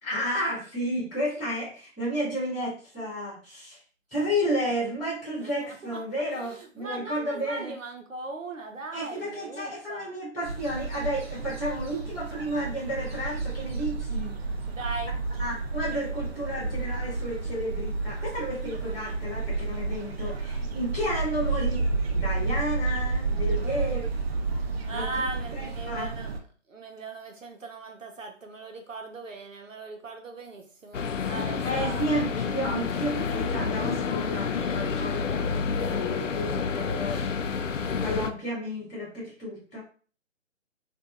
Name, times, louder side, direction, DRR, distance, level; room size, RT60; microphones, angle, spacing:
voice 1, 0.0-3.8 4.1-7.7 8.9-14.4 15.4-21.8 22.1-24.1 24.9-25.2 25.5-26.1 31.6-37.3 38.0-39.8, equal, 5° right, -20 dB, 0.6 m, -32 dB
voice 2, 5.4-10.1 12.0-12.1 12.5-12.7 14.8-15.2 23.6-24.1 24.9-26.3 26.7-32.2, right 3 dB, 90° right, 3 dB, 0.9 m, -39 dB
sound 1, 10.4-26.4, right 3 dB, 55° right, 0.6 m, -31 dB
sound 2, 30.9-38.3, left 5 dB, 80° left, 0.5 m, -29 dB
2.7 x 2.5 x 2.4 m, 0.40 s
figure-of-eight pair, 155°, 38 cm